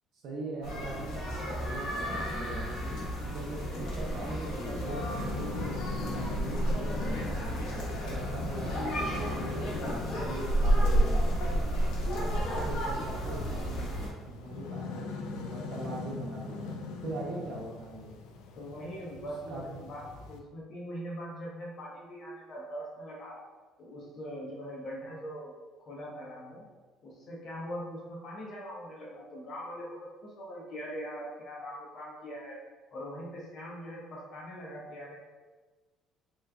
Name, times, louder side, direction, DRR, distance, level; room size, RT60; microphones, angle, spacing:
voice 1, 0.2-1.2 1.5-2.9 3.3-7.0 7.7-11.2 12.0-13.9 14.3-15.0 15.5-16.7 17.0-18.2 19.5-19.8, right 2 dB, 60° right, -4 dB, 0.5 m, -41 dB
sound 1, 0.6-14.1, equal, 70° left, 1.0 m, -31 dB
Trumpet, 1.1-5.5, right 2 dB, 25° right, 1.2 m, -50 dB
sound 2, 4.0-20.4, left 3 dB, 85° left, 0.3 m, -42 dB
voice 2, 18.6-23.4 23.8-25.5 25.9-26.6 27.0-32.6 32.9-35.2, equal, 45° left, -4 dB, 0.7 m, -41 dB
3.3 x 3.0 x 2.4 m, 1.3 s
cardioid pair, 125°, 0 cm